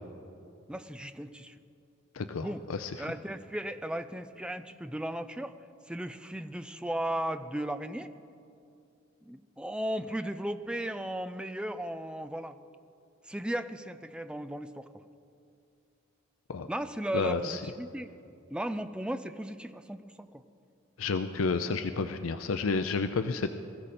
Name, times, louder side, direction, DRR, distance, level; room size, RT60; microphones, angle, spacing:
voice 1, 0.7-1.6 2.4-2.6 3.0-5.5 5.9-8.1 9.2-12.6 13.2-14.9 16.7-18.1 18.5-20.4, right 1 dB, 5° right, 10 dB, 0.4 m, -36 dB
voice 2, 2.1-3.1 16.5-16.7 17.1-17.6 21.0-23.5, left 4 dB, 85° left, 9 dB, 0.5 m, -31 dB
21.0 x 14.5 x 4.3 m, 2.6 s
head